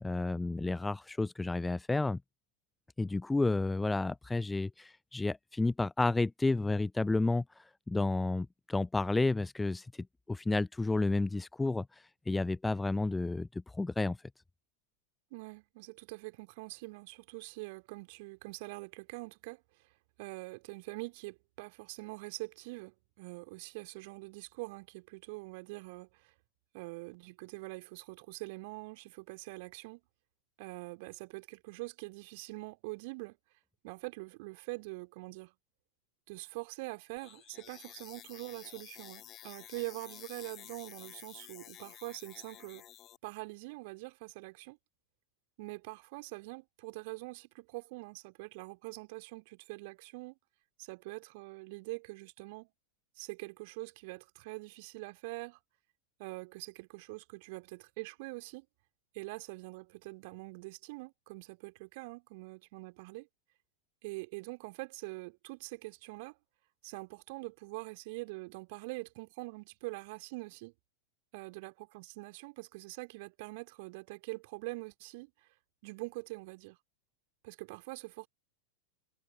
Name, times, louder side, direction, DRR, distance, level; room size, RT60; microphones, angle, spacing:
voice 1, 0.0-2.2 3.0-9.9 10.3-11.9 12.3-13.5 13.7-14.2, left 2 dB, 10° left, 0.4 m, -31 dB
voice 2, 15.3-19.6 20.2-26.3 26.7-30.0 30.6-33.4 33.8-35.5 36.3-42.8 43.2-44.8 45.6-50.4 50.8-52.7 53.1-55.6 56.2-58.7 59.1-63.3 64.0-66.4 66.8-70.7 71.3-75.5 75.8-76.8 77.4-78.3, right 26 dB, 50° right, 2.9 m, -44 dB
sound 1, 37.2-43.2, left 12 dB, 30° left, 2.4 m, -52 dB
figure-of-eight pair, 90°, 0 cm